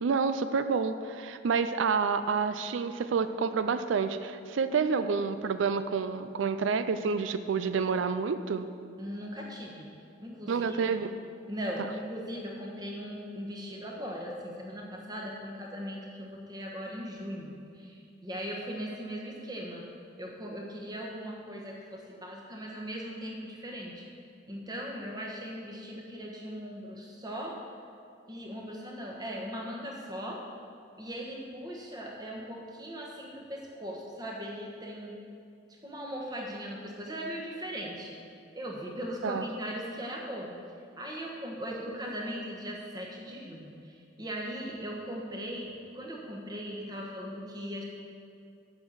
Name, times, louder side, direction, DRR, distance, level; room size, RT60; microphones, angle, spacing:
voice 1, 0.0-8.7 10.5-11.1 39.2-39.4, right 5 dB, 80° right, 11 dB, 0.4 m, -29 dB
voice 2, 9.0-9.9 10.2-10.8 11.5-19.8 20.2-24.0 24.5-27.6 28.3-30.4 31.0-35.2 35.8-38.2 38.5-40.5 41.0-47.8, equal, 20° right, -1 dB, 1.3 m, -39 dB
7.7 x 6.4 x 7.3 m, 2.4 s
head